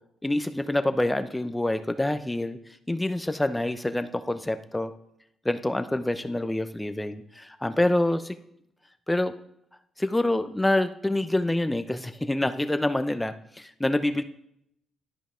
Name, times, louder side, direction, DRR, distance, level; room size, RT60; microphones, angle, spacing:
voice 1, 0.2-2.6 2.9-4.9 5.4-8.4 9.1-9.3 10.0-14.2, left 1 dB, 10° left, 11 dB, 0.6 m, -26 dB
11.5 x 5.2 x 3.7 m, 0.75 s
cardioid pair, 90°, 0 cm